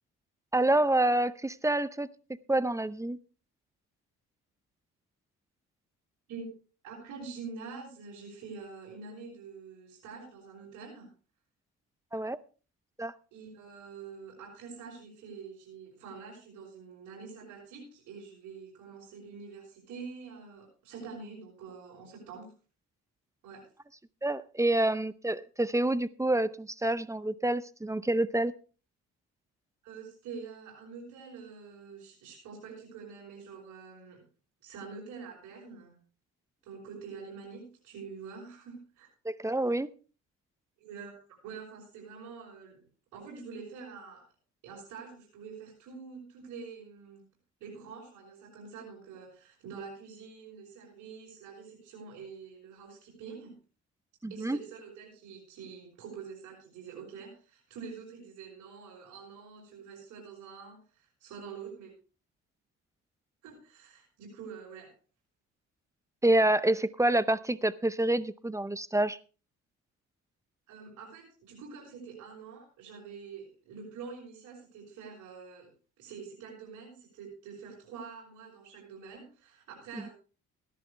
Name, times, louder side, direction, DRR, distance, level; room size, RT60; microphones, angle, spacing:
voice 1, 0.5-2.1 2.5-3.2 12.1-12.4 13.0-13.1 24.2-28.5 39.2-39.9 54.2-54.6 66.2-69.2 79.9-80.1, right 1 dB, 10° right, 16 dB, 0.6 m, -27 dB
voice 2, 6.8-11.1 13.3-22.5 23.4-23.6 29.8-34.2 34.6-36.0 36.6-39.1 40.8-42.8 43.1-44.2 44.6-47.3 47.6-53.5 54.3-61.9 63.4-64.9 70.7-75.7 76.0-80.1, right 5 dB, 90° right, -5 dB, 5.5 m, -46 dB
17.0 x 11.0 x 3.3 m, 0.36 s
cardioid pair, 90°, 30 cm